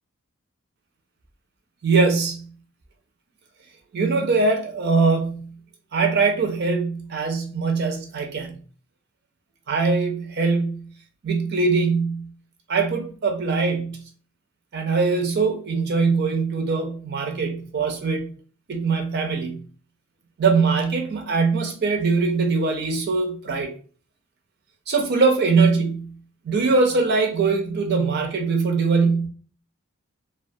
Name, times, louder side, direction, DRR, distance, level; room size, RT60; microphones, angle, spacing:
voice 1, 1.8-2.4 3.9-5.5 5.9-8.5 9.7-10.9 11.2-12.3 12.7-14.0 14.7-18.3 18.7-19.6 20.4-23.7 24.9-26.1 26.5-29.3, right 4 dB, 50° right, 0.4 m, -22 dB
2.3 x 2.2 x 2.5 m
head